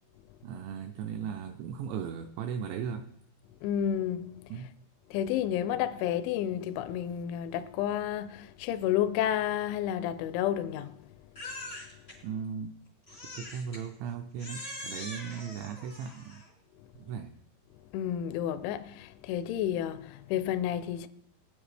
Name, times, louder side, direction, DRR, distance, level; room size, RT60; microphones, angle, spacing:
voice 1, 0.4-3.1 4.5-4.8 12.2-12.8 13.4-16.4 17.0-17.4, right 7 dB, 85° right, 2.6 m, -37 dB
voice 2, 3.6-4.5 5.1-11.0 17.9-21.1, left 10 dB, 80° left, 2.8 m, -31 dB
Crying sobbing, 11.3-12.2 13.1-13.8 14.4-16.5, left 1 dB, 60° left, 0.6 m, -43 dB
22.5 x 9.4 x 3.4 m
omnidirectional pair, 5.8 m